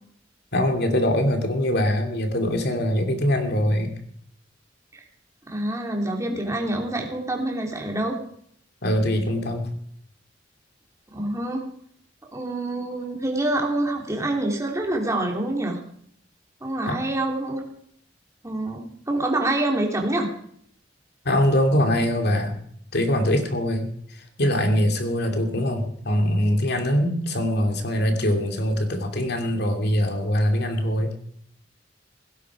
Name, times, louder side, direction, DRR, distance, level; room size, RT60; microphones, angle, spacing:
voice 1, 0.5-3.9 8.8-9.7 16.9-17.0 21.2-22.6 22.9-31.1, equal, 60° left, 4 dB, 2.7 m, -23 dB
voice 2, 5.5-8.2 11.1-11.6 12.3-15.8 16.6-17.6 18.4-20.3, right 1 dB, 15° right, 0 dB, 3.0 m, -26 dB
17.0 x 16.0 x 4.9 m, 0.64 s
head